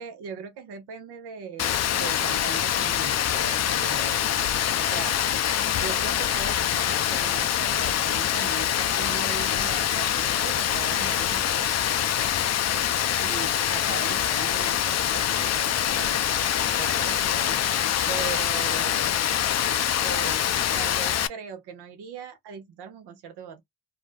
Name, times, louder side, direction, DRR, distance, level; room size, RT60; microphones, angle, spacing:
voice 1, 0.0-4.4 4.8-5.2 5.8-11.7 13.2-16.2 16.5-17.6 18.1-19.2 20.0-23.6, right 6 dB, 85° right, 0.7 m, -39 dB
Rain, 1.6-21.3, left 10 dB, 45° left, 0.4 m, -25 dB
2.4 x 2.1 x 3.2 m
supercardioid pair, 45°, 39 cm